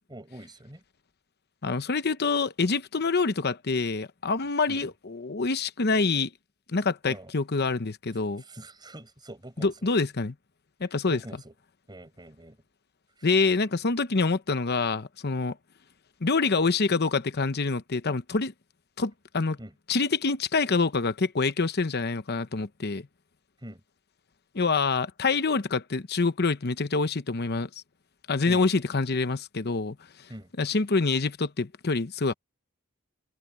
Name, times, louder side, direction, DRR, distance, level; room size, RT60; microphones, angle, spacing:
voice 1, 0.1-0.8 4.7-4.9 7.1-7.3 8.5-9.7 11.1-11.5 11.9-12.6 13.2-13.3 19.6-19.7 23.6-23.8 28.4-28.7 30.3-30.5, right 1 dB, 20° right, 5.7 m, -44 dB
voice 2, 1.6-6.3 6.7-8.4 9.6-10.3 10.8-11.2 13.2-15.6 16.2-18.5 19.0-19.6 19.9-23.0 24.5-27.7 28.3-30.0 30.6-32.3, left 4 dB, 50° left, 0.9 m, -26 dB
head